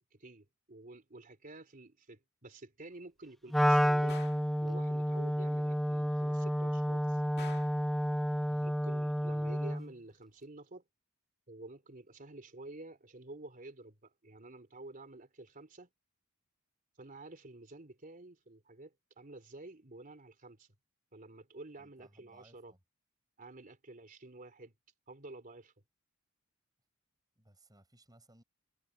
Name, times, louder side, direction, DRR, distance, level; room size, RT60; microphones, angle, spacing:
voice 1, 0.1-4.2 4.6-7.2 8.6-10.8 11.5-15.9 17.0-20.7 21.1-22.7 23.4-24.7 25.1-25.7, right 2 dB, 40° right, 3.6 m, -50 dB
Wind instrument woodwind instrument, 3.5-9.9, equal, ahead, 0.4 m, -30 dB
Gunshot gunfire, 4.1-4.5 7.4-7.8, left 6 dB, 50° left, 2.2 m, -49 dB
voice 2, 21.7-22.8 27.4-28.4, right 1 dB, 20° right, 6.4 m, -63 dB
head